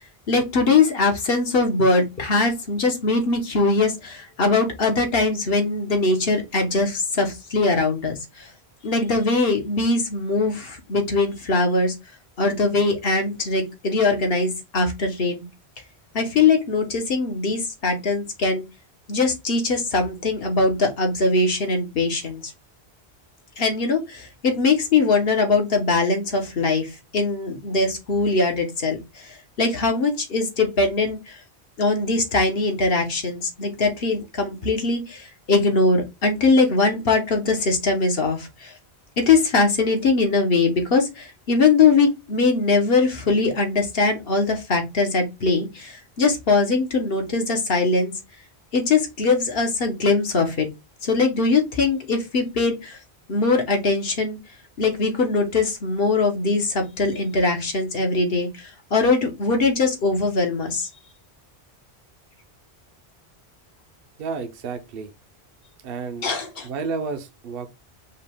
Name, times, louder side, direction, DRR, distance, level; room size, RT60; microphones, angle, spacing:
voice 1, 0.3-8.5 8.8-11.9 12.4-15.5 16.1-18.6 19.1-22.4 23.6-31.4 31.8-38.7 39.2-48.1 48.7-50.7 51.0-53.0 53.3-54.4 54.8-60.9 66.2-66.7, left 3 dB, 65° left, 1.3 m, -21 dB
voice 2, 64.2-65.1 65.8-66.3 66.6-67.7, right 4 dB, 65° right, 0.8 m, -31 dB
5.5 x 2.3 x 3.4 m
omnidirectional pair, 1.1 m